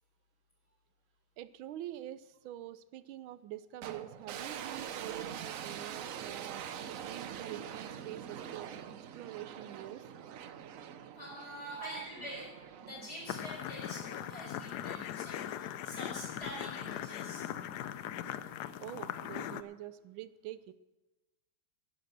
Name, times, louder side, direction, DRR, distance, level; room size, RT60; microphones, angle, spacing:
voice 1, 1.4-6.7 7.0-8.7 9.1-10.0 11.6-12.1 18.8-20.7, right 13 dB, 85° right, 16 dB, 1.4 m, -45 dB
sound 1, 3.8-15.0, right 8 dB, 65° right, 0.8 m, -45 dB
voice 2, 11.1-12.5 12.8-17.5, equal, 30° left, -2 dB, 5.3 m, -46 dB
sound 2, 13.3-19.6, left 10 dB, 70° left, 1.0 m, -40 dB
12.0 x 9.9 x 6.6 m, 1.1 s
omnidirectional pair, 2.2 m